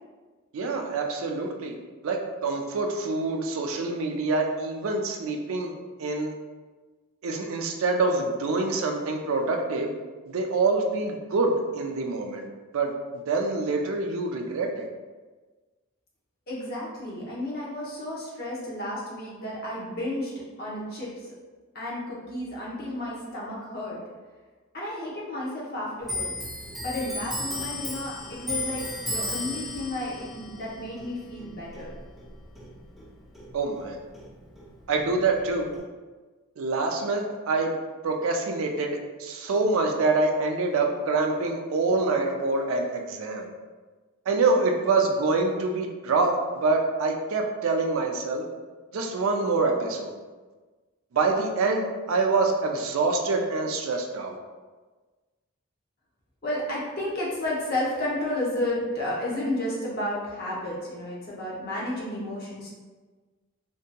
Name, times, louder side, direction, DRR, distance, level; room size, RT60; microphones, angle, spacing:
voice 1, 0.5-1.7 2.0-5.7 6.0-6.3 7.2-9.9 10.3-12.5 12.7-14.9 33.5-34.0 34.9-35.7 36.6-37.7 38.0-43.5 44.3-48.4 48.9-50.1 51.1-54.4, right 3 dB, 70° right, 3 dB, 0.4 m, -26 dB
voice 2, 16.5-20.3 20.6-21.3 21.7-24.0 24.7-26.3 26.8-31.9 56.4-62.7, left 1 dB, 45° left, -5 dB, 0.7 m, -32 dB
Clock, 26.0-33.1 33.4-34.7 34.9-35.8, left 1 dB, ahead, 0.5 m, -35 dB
2.7 x 2.6 x 2.2 m, 1.3 s
head